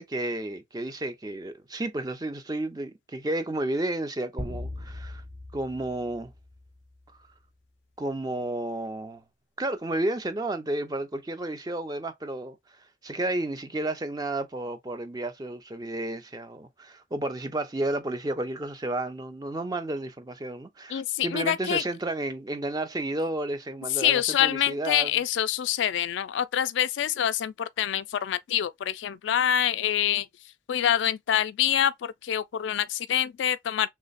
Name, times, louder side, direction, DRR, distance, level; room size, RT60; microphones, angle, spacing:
voice 1, 0.0-5.2 5.5-6.3 8.0-9.2 9.6-12.6 13.0-25.2, right 1 dB, 20° right, 0.5 m, -32 dB
sound 1, 4.4-7.0, left 1 dB, 35° right, 1.0 m, -39 dB
voice 2, 20.9-21.8 24.0-30.3 30.7-33.9, left 10 dB, 80° left, 0.3 m, -26 dB
3.2 x 2.1 x 4.0 m
head